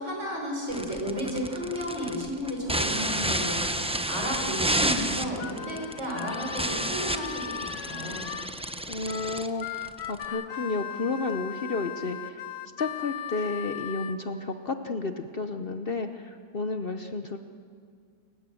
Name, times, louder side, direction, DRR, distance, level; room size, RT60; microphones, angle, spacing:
voice 1, 0.0-8.3, equal, 50° right, 0 dB, 5.9 m, -33 dB
sound 1, 0.7-10.2, right 1 dB, 5° right, 0.5 m, -31 dB
Harmonica, 5.0-8.5 9.1-14.2, left 10 dB, 85° left, 1.3 m, -38 dB
voice 2, 8.9-12.4 12.8-17.4, left 3 dB, 45° left, 7 dB, 0.9 m, -32 dB
28.5 x 16.0 x 7.7 m, 2.1 s
omnidirectional pair, 1.6 m